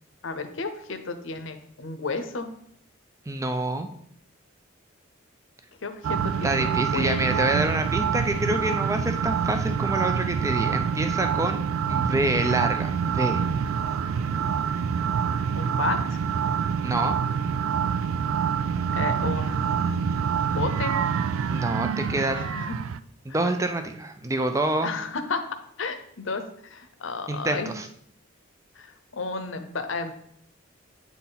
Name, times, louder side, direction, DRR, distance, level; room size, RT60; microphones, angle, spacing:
voice 1, 0.2-2.5 5.8-6.6 6.9-7.5 15.6-16.2 18.9-20.9 22.4-22.8 24.8-25.4 25.8-27.7 28.8-30.1, left 4 dB, 70° left, 8 dB, 0.8 m, -32 dB
voice 2, 3.3-3.9 6.4-11.6 11.9-13.4 16.8-17.1 21.5-22.4 23.2-24.9 27.3-27.9, right 1 dB, 15° right, 6 dB, 0.5 m, -27 dB
sound 1, 6.0-23.0, right 7 dB, 85° right, 0.3 m, -26 dB
8.3 x 4.2 x 4.0 m, 0.66 s
head